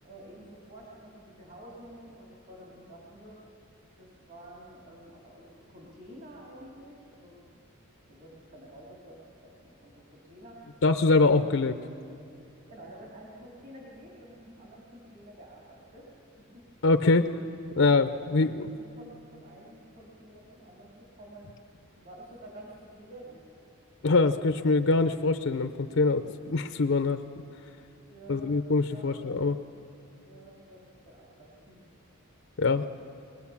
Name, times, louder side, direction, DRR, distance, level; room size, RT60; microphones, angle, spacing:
voice 1, 0.0-3.4 4.0-7.4 8.1-10.6 12.5-16.1 16.5-16.7 18.2-18.4 18.7-21.6 22.0-23.4 28.0-29.4 30.2-31.9, right 1 dB, 45° right, -4 dB, 3.2 m, -50 dB
voice 2, 10.8-11.8 16.8-17.4 17.8-18.7 24.0-27.2 28.3-29.6 32.6-32.9, left 3 dB, 65° left, 10 dB, 0.6 m, -24 dB
21.0 x 20.0 x 7.1 m, 2.6 s
head